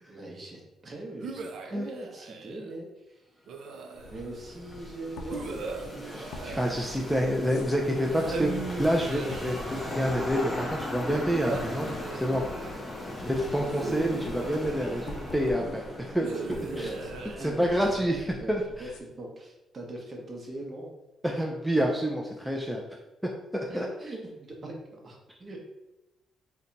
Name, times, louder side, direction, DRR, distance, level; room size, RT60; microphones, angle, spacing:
voice 1, 0.0-3.3 4.1-6.6 13.1-13.5 15.7-15.8 16.5-18.0 18.4-18.5 18.8-20.9 23.7-25.6, right 1 dB, 40° right, 0 dB, 0.8 m, -41 dB
sound 1, 1.2-2.7 3.5-4.4 5.3-7.5 8.1-10.0 11.1-12.8 13.7-15.3 16.2-18.2, right 4 dB, 70° right, 0.4 m, -39 dB
sound 2, 3.7-18.2, left 1 dB, 25° left, 0.7 m, -39 dB
sound 3, 3.9-19.0, left 2 dB, 80° left, 0.4 m, -46 dB
voice 2, 6.6-8.5 8.8-12.4 13.2-15.8 16.2-16.3 16.8-16.9 17.4-18.6 21.2-22.8 23.5-23.9, equal, ahead, -1 dB, 0.4 m, -28 dB
2.7 x 2.2 x 3.9 m, 0.97 s
cardioid pair, 90°, 0 cm